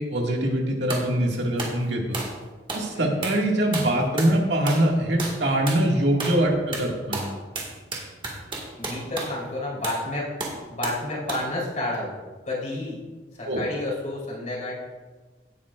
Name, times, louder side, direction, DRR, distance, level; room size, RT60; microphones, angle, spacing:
voice 1, 0.0-2.2 2.7-7.3 13.5-13.6, right 1 dB, 80° right, 0 dB, 2.0 m, -23 dB
sound 1, 0.9-1.1 1.6-1.8 2.1-2.4 2.7-2.9 3.2-3.4 3.7-4.4 4.7-4.9 5.2-5.4 5.7-5.9 6.2-6.4 6.7-9.4 9.8-10.0 10.4-11.0 11.3-11.5, right 3 dB, 30° right, 1.9 m, -32 dB
voice 2, 8.8-10.3 10.7-12.2 12.4-13.0 13.3-14.7, left 2 dB, 45° left, -5 dB, 3.8 m, -30 dB
16.5 x 9.0 x 2.5 m, 1.3 s
head